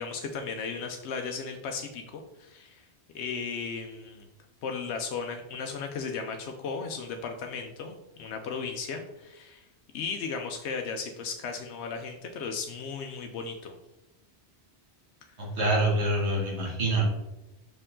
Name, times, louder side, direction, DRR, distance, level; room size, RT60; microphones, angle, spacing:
voice 1, 0.0-2.8 3.1-4.3 4.6-9.7 9.9-13.7, left 5 dB, 90° left, 4 dB, 0.9 m, -35 dB
voice 2, 15.6-17.0, right 2 dB, 85° right, -3 dB, 2.2 m, -25 dB
5.7 x 4.5 x 3.7 m, 0.99 s
omnidirectional pair, 1.1 m